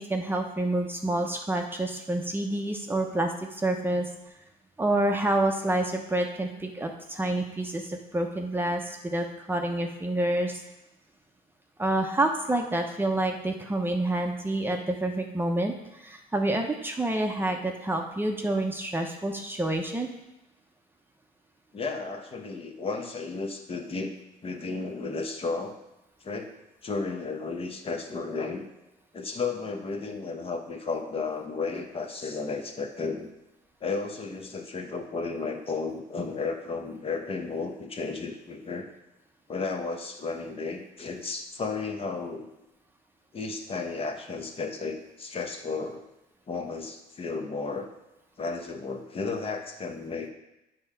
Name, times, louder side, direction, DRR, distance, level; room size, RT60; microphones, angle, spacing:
voice 1, 0.0-4.1 4.8-10.6 11.8-20.1, right 1 dB, 10° right, 2 dB, 0.8 m, -28 dB
voice 2, 21.7-24.1 24.4-25.8 26.2-26.5 26.8-28.7 29.1-33.3 33.8-38.9 39.5-42.5 43.3-46.0 46.5-47.9 48.4-50.3, left 4 dB, 35° left, 4 dB, 0.9 m, -33 dB
7.8 x 3.7 x 5.6 m, 0.96 s
cardioid pair, 110°, 17 cm